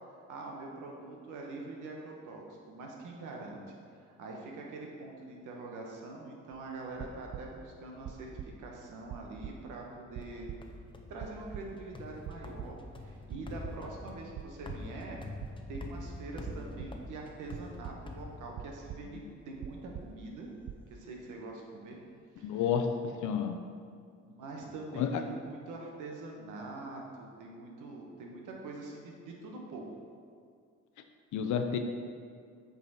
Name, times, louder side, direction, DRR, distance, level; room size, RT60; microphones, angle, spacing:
voice 1, 0.3-3.6 4.0-8.3 8.6-10.5 11.1-15.2 15.7-20.5 20.9-22.0 22.4-22.6 24.2-30.0, right 2 dB, 85° right, 0 dB, 1.2 m, -44 dB
sound 1, 6.5-7.6 8.0-8.8 9.1-10.8 11.2-12.0 12.3-13.0 13.3-14.0 14.3-15.0 15.4-16.2 16.4-17.1 17.5-18.3 18.6-19.3 19.6-20.4 20.6-20.9, right 9 dB, 45° right, 0.4 m, -44 dB
sound 2, 10.2-19.0, left 2 dB, 15° left, 0.6 m, -46 dB
voice 2, 22.4-23.6 25.0-25.1 31.3-31.8, left 7 dB, 75° left, 6 dB, 0.6 m, -30 dB
8.3 x 4.0 x 4.2 m, 2.2 s
cardioid pair, 90°, 30 cm